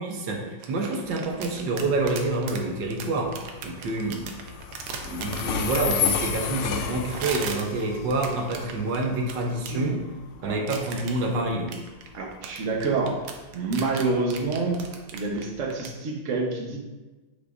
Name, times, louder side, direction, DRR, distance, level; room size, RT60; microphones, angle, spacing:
voice 1, 0.0-3.4 3.6-4.3 5.0-10.0 10.4-11.8, right 2 dB, 65° right, 1 dB, 1.5 m, -27 dB
sound 1, 0.6-6.3 7.1-9.7 10.7-11.3 11.7-15.9, right 6 dB, 90° right, 1.7 m, -37 dB
Train, 1.1-15.8, left 7 dB, 85° left, 1.5 m, -34 dB
voice 2, 12.1-13.2 13.5-14.8 15.1-16.8, right 3 dB, 45° right, 0 dB, 1.2 m, -27 dB
7.9 x 6.4 x 2.6 m, 1.2 s
omnidirectional pair, 2.3 m